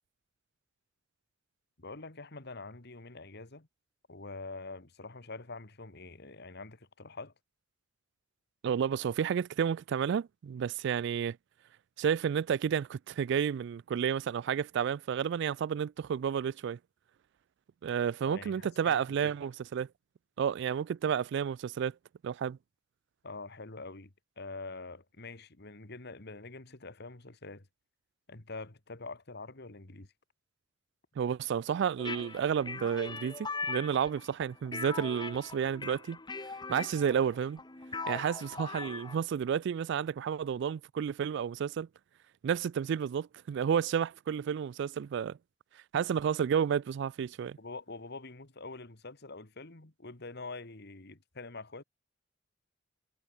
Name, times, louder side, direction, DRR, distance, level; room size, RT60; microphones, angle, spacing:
voice 1, 1.8-3.7 4.1-7.3 18.3-19.5 23.2-27.7 28.3-30.1 47.6-51.8, left 3 dB, 55° left, 2.1 m, -45 dB
voice 2, 8.6-11.4 12.0-16.8 17.8-19.9 20.4-21.9 22.2-22.6 31.2-36.2 36.7-37.6 38.1-41.9 42.4-45.4 45.9-47.6, right 7 dB, 60° right, 0.3 m, -31 dB
sound 1, 32.0-39.2, left 4 dB, 20° left, 1.3 m, -40 dB
head